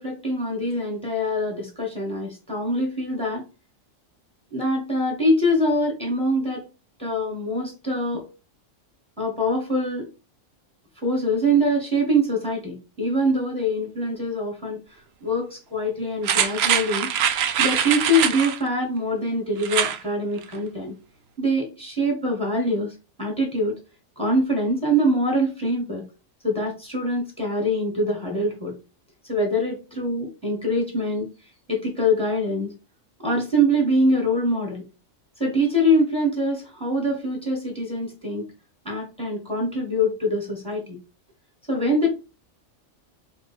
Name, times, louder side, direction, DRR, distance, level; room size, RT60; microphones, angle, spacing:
voice 1, 0.0-3.5 4.5-6.7 7.0-8.3 9.2-10.1 11.0-14.8 15.2-17.1 17.6-20.9 21.4-23.8 24.2-26.0 26.4-28.7 29.3-31.3 31.7-32.7 33.2-34.8 35.4-38.4 38.8-41.0 41.7-42.1, equal, 5° left, -1 dB, 1.7 m, -24 dB
sound 1, 16.2-18.6 19.6-20.0 20.4-20.5, right 9 dB, 65° right, 0.7 m, -23 dB
3.1 x 3.0 x 4.2 m, 0.30 s
omnidirectional pair, 1.4 m